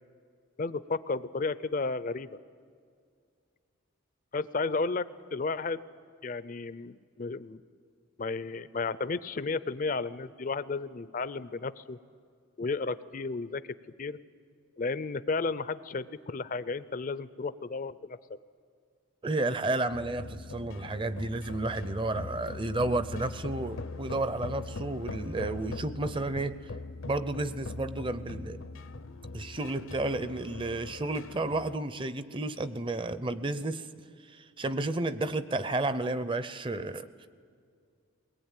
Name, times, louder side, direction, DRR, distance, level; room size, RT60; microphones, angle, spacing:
voice 1, 0.6-2.3 4.3-5.1 5.3-5.8 6.2-7.6 8.2-12.0 12.6-13.6 14.0-14.2 14.8-18.2, left 3 dB, 40° left, 15 dB, 0.5 m, -33 dB
voice 2, 19.2-26.7 27.0-28.6 29.3-33.9 34.2-37.3, right 2 dB, 25° right, 13 dB, 0.6 m, -32 dB
sound 1, 19.9-31.8, left 3 dB, 70° left, 0.7 m, -41 dB
22.0 x 19.0 x 9.0 m, 2.2 s
head